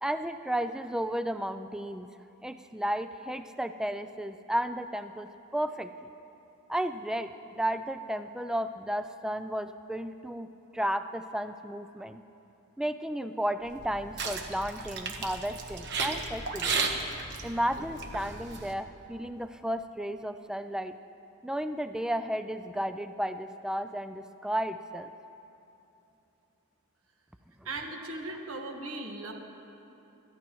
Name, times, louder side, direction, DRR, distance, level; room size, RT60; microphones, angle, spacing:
voice 1, 0.0-2.1 2.4-5.9 6.7-10.5 10.7-12.2 12.8-16.8 17.4-21.0 21.4-25.1, equal, 5° right, 9 dB, 0.3 m, -33 dB
sound 1, 13.7-18.7, right 4 dB, 50° right, 1.2 m, -34 dB
voice 2, 27.6-29.3, right 2 dB, 65° right, 1 dB, 1.6 m, -38 dB
27.0 x 13.5 x 3.1 m, 2.9 s
head